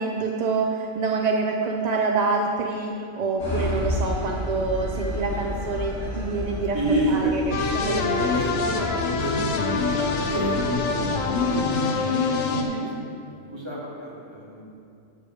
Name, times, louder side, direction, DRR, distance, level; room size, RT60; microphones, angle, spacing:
voice 1, 0.0-8.4 8.9-9.0 12.5-12.9, right 4 dB, 50° right, 1 dB, 0.5 m, -27 dB
sound 1, 3.4-11.5, left 1 dB, 55° left, 3.1 m, -32 dB
voice 2, 6.7-7.3 8.1-8.6 9.2-11.8 12.2-12.3 12.8-12.9 13.5-14.7, right 2 dB, 20° right, -6 dB, 2.1 m, -29 dB
sound 2, 7.5-12.6, left 4 dB, 80° left, 1.3 m, -25 dB
8.5 x 6.8 x 6.3 m, 2.5 s
omnidirectional pair, 1.4 m